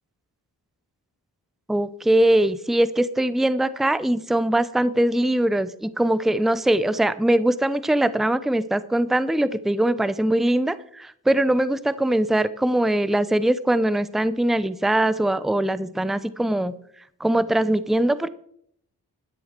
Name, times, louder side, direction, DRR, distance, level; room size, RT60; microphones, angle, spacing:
voice 1, 1.7-16.7 17.2-18.3, right 1 dB, ahead, 15 dB, 0.8 m, -21 dB
12.5 x 9.9 x 4.6 m, 0.66 s
cardioid pair, 45°, 40 cm